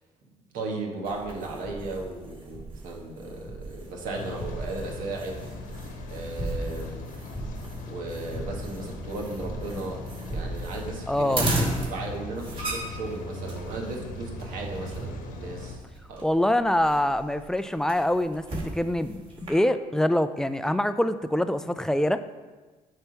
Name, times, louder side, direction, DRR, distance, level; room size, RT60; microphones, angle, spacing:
voice 1, 0.5-5.4 6.1-7.0 7.9-10.1 10.3-15.8 16.1-16.3, right 2 dB, 75° right, 0 dB, 1.3 m, -36 dB
sound 1, 1.0-19.5, right 1 dB, 40° right, 2.4 m, -36 dB
Rain, 4.1-15.8, left 2 dB, 70° left, 1.1 m, -40 dB
voice 2, 11.1-11.5 16.2-19.2 19.5-22.3, left 1 dB, 5° left, 11 dB, 0.4 m, -25 dB
8.0 x 3.4 x 5.8 m, 1.3 s
supercardioid pair, 75°, 14 cm